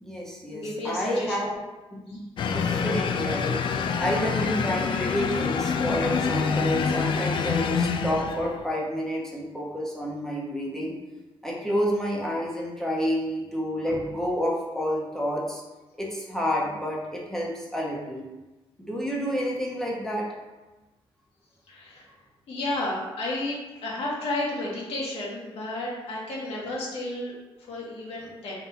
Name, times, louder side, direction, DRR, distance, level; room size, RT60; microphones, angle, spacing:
voice 1, 0.0-1.5 1.9-11.0 11.4-15.6 16.0-18.2 18.9-20.3, equal, 5° left, -4 dB, 1.0 m, -29 dB
voice 2, 0.5-1.5 2.1-2.2 21.7-22.1 22.5-28.6, left 1 dB, 70° left, -5 dB, 1.3 m, -32 dB
sound 1, 2.4-8.7, left 5 dB, 55° left, 0.4 m, -26 dB
4.0 x 2.6 x 4.2 m, 1.1 s
cardioid pair, 110°, 10 cm